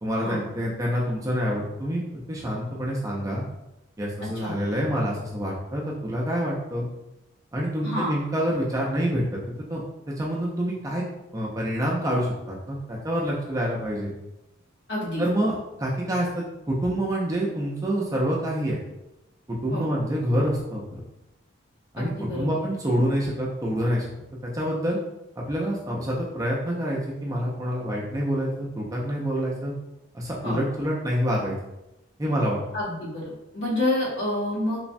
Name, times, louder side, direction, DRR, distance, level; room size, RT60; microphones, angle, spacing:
voice 1, 0.0-3.4 4.0-6.9 7.5-9.4 9.7-9.8 10.2-11.0 11.3-14.1 15.2-18.8 19.5-21.0 21.9-24.1 24.4-25.0 25.4-29.7 30.1-31.5 32.2-32.6, equal, 15° right, -4 dB, 0.3 m, -27 dB
voice 2, 7.8-8.1 14.9-15.2 19.7-19.8 22.0-22.5 30.4-30.6 32.7-34.8, left 1 dB, 65° left, -7 dB, 1.1 m, -28 dB
3.2 x 2.0 x 2.5 m, 0.93 s
head